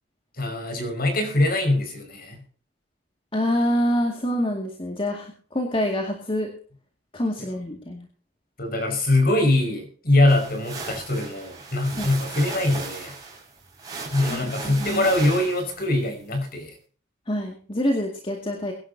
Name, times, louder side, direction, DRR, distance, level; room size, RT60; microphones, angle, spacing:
voice 1, 0.4-2.4 7.4-7.5 8.6-13.1 14.1-16.7, left 1 dB, 50° left, 5 dB, 5.5 m, -23 dB
voice 2, 3.3-6.5 7.1-8.1 12.0-12.1 14.3-15.1 17.3-18.7, equal, 25° left, 1 dB, 2.2 m, -26 dB
sound 1, 10.3-15.9, right 3 dB, 20° right, 5.8 m, -36 dB
23.0 x 11.5 x 2.8 m, 0.43 s
head